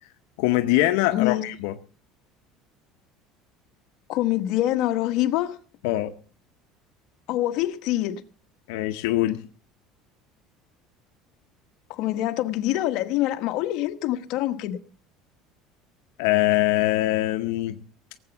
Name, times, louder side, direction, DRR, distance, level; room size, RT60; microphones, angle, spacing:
voice 1, 0.4-1.7 5.8-6.1 8.7-9.4 16.2-17.8, left 16 dB, 85° left, 0.8 m, -23 dB
voice 2, 1.1-1.5 4.1-5.6 7.3-8.2 11.9-14.8, left 14 dB, 55° left, 1.3 m, -25 dB
18.0 x 8.0 x 7.0 m
cardioid pair, 160°, 0 cm